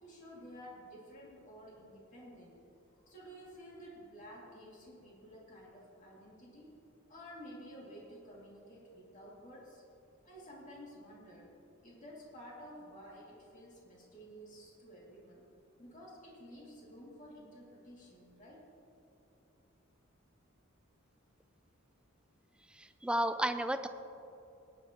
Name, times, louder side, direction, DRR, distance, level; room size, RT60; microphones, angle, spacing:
voice 1, 0.0-2.6 3.0-6.7 7.1-9.8 10.2-15.5 15.8-18.7, equal, 40° left, -4 dB, 2.4 m, -52 dB
voice 2, 22.7-23.9, right 1 dB, 5° right, 9 dB, 0.4 m, -32 dB
18.0 x 9.9 x 2.9 m, 2.8 s
head